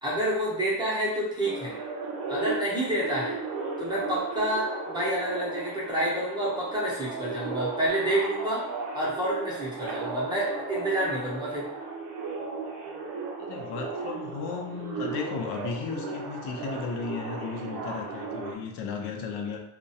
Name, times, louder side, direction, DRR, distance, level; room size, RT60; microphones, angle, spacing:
voice 1, 0.0-1.7 2.3-3.4 3.8-8.6 8.9-11.7, right 1 dB, 10° right, -7 dB, 0.5 m, -28 dB
sound 1, 1.4-18.5, right 4 dB, 60° right, 0.5 m, -36 dB
voice 2, 13.4-19.6, left 5 dB, 85° left, 2 dB, 0.6 m, -35 dB
2.3 x 2.1 x 2.7 m, 0.84 s
cardioid pair, 175°, 39 cm